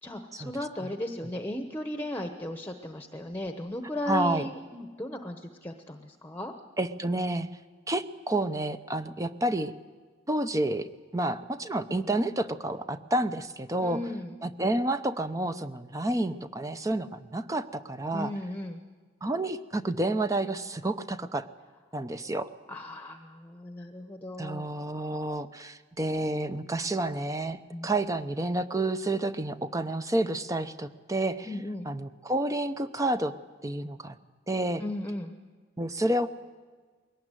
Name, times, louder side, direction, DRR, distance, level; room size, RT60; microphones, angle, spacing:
voice 1, 0.0-6.5 13.8-14.3 18.1-18.8 22.7-24.7 27.7-27.9 31.4-31.9 34.8-35.3, left 1 dB, 10° left, 5 dB, 1.0 m, -36 dB
voice 2, 4.1-4.5 6.8-7.5 7.9-9.7 10.3-10.9 11.1-14.0 14.4-18.3 19.2-21.5 21.9-22.5 24.4-31.5 31.9-33.3 33.6-34.2 34.5-34.8 35.8-36.3, right 1 dB, 20° right, 10 dB, 0.7 m, -29 dB
22.0 x 18.5 x 9.1 m, 1.5 s
head